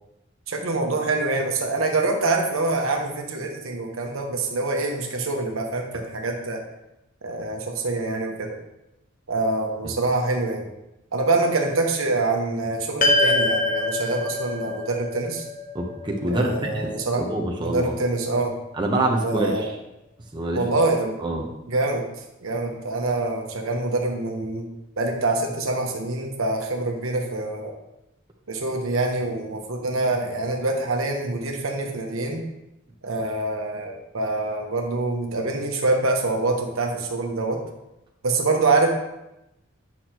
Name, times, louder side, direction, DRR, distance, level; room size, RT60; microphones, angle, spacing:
voice 1, 0.5-6.6 7.2-8.6 9.3-10.7 11.1-15.4 16.3-17.2 17.6-18.5 19.2-19.7 20.5-21.2 21.7-22.0 22.4-24.7 25.0-27.7 28.5-32.4 33.0-37.6 38.2-38.9, right 2 dB, 85° right, 2 dB, 1.1 m, -25 dB
sound 1, 13.0-17.5, left 2 dB, 40° left, 0.8 m, -25 dB
voice 2, 15.7-17.9 18.8-19.7 20.3-20.6 21.2-21.5, right 1 dB, 25° right, -1 dB, 0.9 m, -26 dB
8.6 x 6.2 x 3.0 m, 0.91 s
head